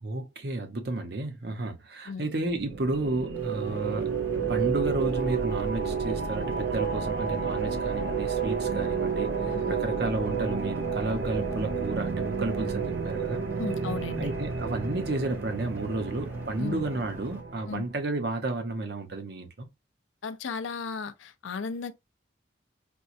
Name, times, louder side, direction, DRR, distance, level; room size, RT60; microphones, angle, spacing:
voice 1, 0.0-4.1 4.5-13.4 14.2-19.7, right 2 dB, 55° right, 0.8 m, -32 dB
sound 1, 2.5-17.9, right 6 dB, 75° right, 0.5 m, -31 dB
sound 2, 3.3-17.4, right 1 dB, 10° right, 0.7 m, -47 dB
voice 2, 13.6-14.3 16.6-16.8 17.7-17.8 20.2-21.9, left 4 dB, 85° left, 0.5 m, -35 dB
4.4 x 2.3 x 2.6 m
head